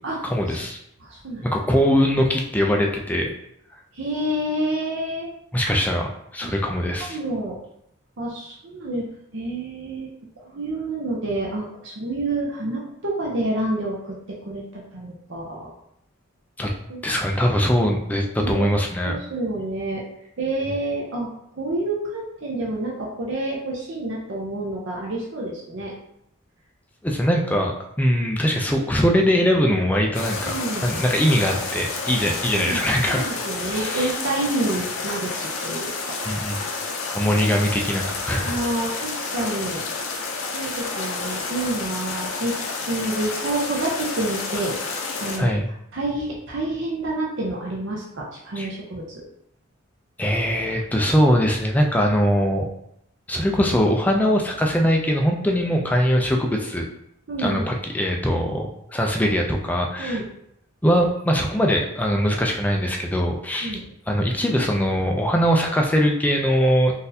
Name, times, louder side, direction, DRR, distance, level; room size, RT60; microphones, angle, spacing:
voice 1, 0.2-0.8 1.4-3.3 5.5-7.2 16.6-16.7 17.0-19.2 27.0-30.5 30.8-33.3 33.7-34.1 36.3-36.6 37.1-38.6 45.4-45.6 48.6-48.7 50.2-52.7 53.3-56.9 57.4-60.2 60.8-63.8 64.1-66.9, equal, 10° left, 1 dB, 0.3 m, -21 dB
voice 2, 1.0-1.4 3.9-5.3 6.4-6.5 7.1-7.6 8.2-10.1 10.4-15.7 16.9-17.0 18.4-18.7 19.0-20.0 20.4-21.3 21.6-25.9 30.4-30.9 32.5-32.8 33.1-36.2 38.4-39.8 40.5-42.6 42.9-44.7 45.2-45.5 45.9-49.2 57.3-57.7 60.0-60.2 63.6-63.8, right 2 dB, 65° right, -3 dB, 0.6 m, -28 dB
sound 1, 30.1-45.4, left 4 dB, 75° left, 0.6 m, -30 dB
3.9 x 2.6 x 2.7 m, 0.75 s
head